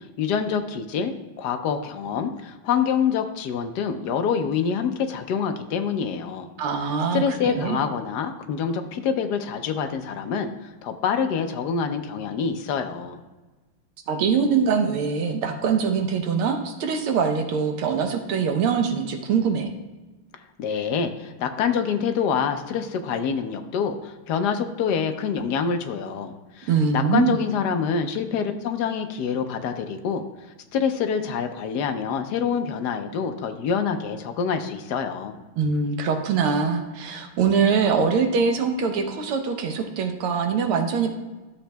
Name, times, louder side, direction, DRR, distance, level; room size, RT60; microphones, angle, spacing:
voice 1, 0.2-6.5 7.1-10.5 10.8-13.2 20.6-30.2 30.7-35.4, left 6 dB, 70° left, 7 dB, 1.0 m, -26 dB
voice 2, 6.6-7.8 14.1-19.7 26.7-27.4 35.6-41.1, right 6 dB, 80° right, 5 dB, 1.7 m, -23 dB
13.0 x 7.0 x 2.2 m, 1.2 s
omnidirectional pair, 2.4 m